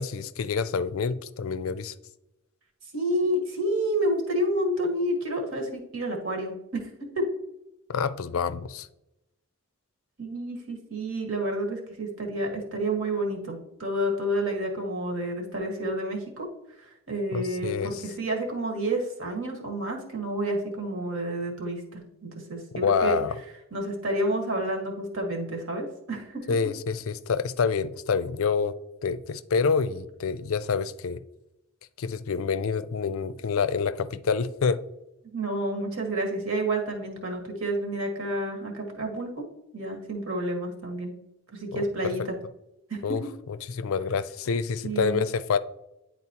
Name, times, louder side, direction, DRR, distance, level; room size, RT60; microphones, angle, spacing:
voice 1, 0.0-1.9 7.9-8.9 17.3-18.0 22.8-23.4 26.5-28.8 29.0-31.2 32.0-34.8 41.7-41.8 43.0-45.6, left 5 dB, 70° left, 0.4 m, -27 dB
voice 2, 2.9-6.9 7.1-7.2 10.2-16.5 16.8-23.2 23.7-26.5 35.3-39.4 39.7-41.1 41.5-42.3 42.9-43.3 44.8-45.2, right 1 dB, 65° right, 1.6 m, -29 dB
9.8 x 4.0 x 2.9 m
head